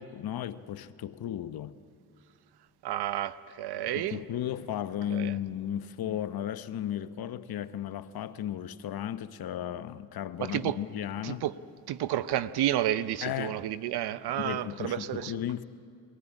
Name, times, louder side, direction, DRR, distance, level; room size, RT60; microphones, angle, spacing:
voice 1, 0.0-1.8 3.7-11.4 13.2-13.6 14.4-15.6, left 10 dB, 60° left, 0.9 m, -35 dB
voice 2, 2.8-4.2 5.1-5.3 10.4-10.8 11.2-11.5 11.9-15.3, right 12 dB, 70° right, 0.8 m, -31 dB
22.5 x 15.5 x 9.9 m
supercardioid pair, 65°, 41 cm